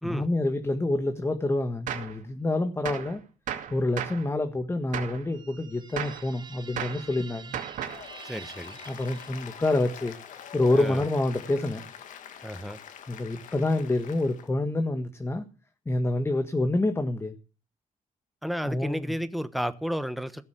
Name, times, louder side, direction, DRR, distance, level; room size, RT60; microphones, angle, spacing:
voice 1, 0.0-3.2 3.7-7.6 8.9-10.1 10.5-11.8 13.1-15.4 15.8-17.4 18.6-19.1, left 2 dB, 20° left, 1.6 m, -27 dB
Gunshot gunfire, 1.9-2.2 2.9-3.2 3.5-4.3 4.9-5.2 6.0-6.3 6.8-7.1 7.5-8.1, right 9 dB, 90° right, 2.4 m, -34 dB
sound 1, 5.3-10.0, right 5 dB, 35° right, 1.5 m, -47 dB
Applause, 7.7-14.5, left 8 dB, 85° left, 2.1 m, -45 dB
voice 2, 8.2-8.8 10.8-11.0 12.4-12.8 18.4-20.4, equal, ahead, 1.2 m, -32 dB
17.0 x 7.0 x 8.1 m
cardioid pair, 105°, 13 cm